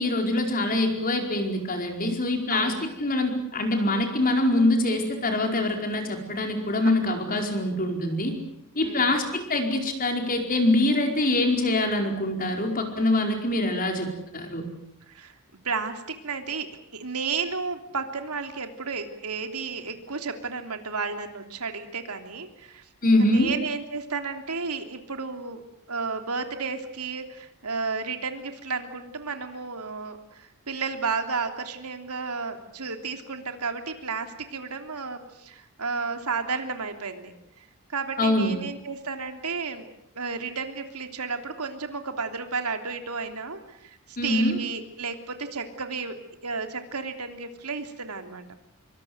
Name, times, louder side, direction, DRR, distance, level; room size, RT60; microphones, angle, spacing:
voice 1, 0.0-8.4 8.7-14.7 23.0-23.5 38.2-38.6 44.2-44.6, left 1 dB, 40° left, 4 dB, 4.9 m, -24 dB
voice 2, 2.5-2.8 7.4-7.5 8.8-9.2 15.1-15.3 15.6-22.8 23.2-25.6 25.9-39.9 40.1-46.2 46.4-48.6, right 4 dB, 90° right, 6 dB, 3.2 m, -32 dB
26.0 x 24.0 x 7.9 m, 0.78 s
head